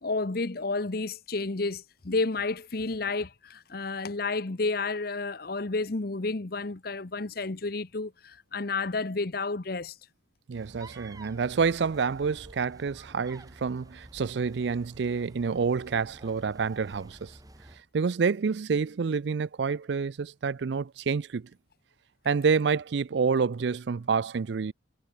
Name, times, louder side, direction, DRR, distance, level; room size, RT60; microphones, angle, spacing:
voice 1, 0.0-9.9, left 3 dB, 50° left, 0.9 m, -31 dB
sound 1, 10.5-17.8, right 1 dB, 20° right, 2.2 m, -50 dB
voice 2, 10.5-17.4 17.9-21.5 22.2-24.7, right 5 dB, 65° right, 0.4 m, -28 dB
head